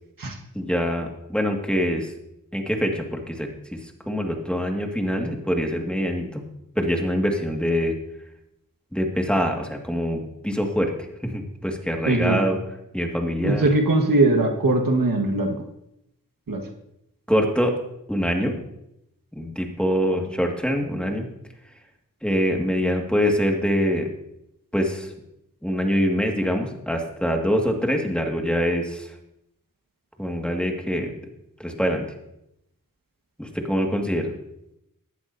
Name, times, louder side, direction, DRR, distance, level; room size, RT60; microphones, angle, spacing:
voice 1, 0.5-2.1 2.5-6.4 6.8-7.9 8.9-10.9 11.2-12.6 12.9-13.6 17.3-17.7 18.1-18.6 19.4-21.3 22.2-24.1 24.7-25.1 25.6-29.1 30.2-31.1 31.6-32.1 33.4-34.3, equal, 5° left, 2 dB, 1.9 m, -24 dB
voice 2, 12.0-12.4 13.4-15.6 16.5-16.6, right 2 dB, 75° right, 2 dB, 1.6 m, -20 dB
17.5 x 11.5 x 2.7 m, 0.81 s
wide cardioid pair, 55°, 34 cm